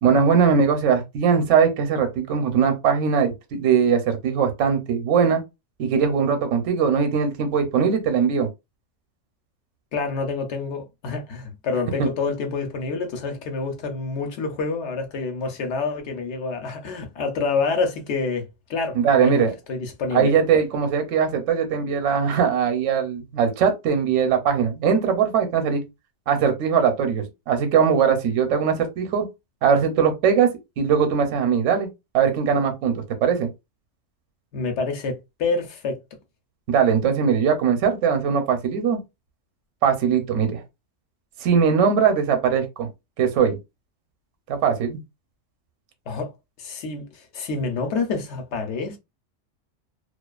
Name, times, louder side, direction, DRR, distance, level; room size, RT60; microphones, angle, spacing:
voice 1, 0.0-5.4 5.8-8.5 12.0-12.1 18.9-19.5 20.1-25.9 26.3-29.3 29.6-30.5 30.8-31.9 32.1-33.5 36.7-39.0 39.8-40.6 41.4-42.9 43.2-43.6 44.5-45.0, right 6 dB, 75° right, 0.9 m, -20 dB
voice 2, 9.9-20.3 34.5-36.0 46.1-46.3 46.6-49.0, left 4 dB, 70° left, 0.9 m, -27 dB
2.4 x 2.3 x 2.3 m
omnidirectional pair, 1.3 m